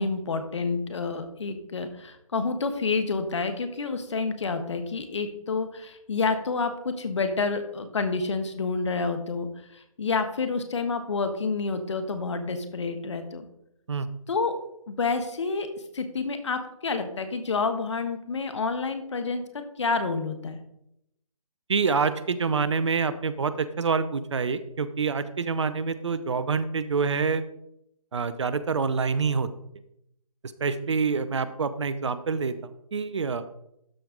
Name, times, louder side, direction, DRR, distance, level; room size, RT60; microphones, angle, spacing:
voice 1, 0.0-13.4 14.3-14.5 14.9-15.7 15.9-19.4 19.8-20.6, left 4 dB, 50° left, 8 dB, 1.3 m, -29 dB
voice 2, 21.7-27.4 28.1-29.5 30.6-32.5 32.9-33.4, right 5 dB, 50° right, 13 dB, 0.6 m, -26 dB
12.5 x 4.6 x 3.8 m, 0.78 s
figure-of-eight pair, 155°, 19 cm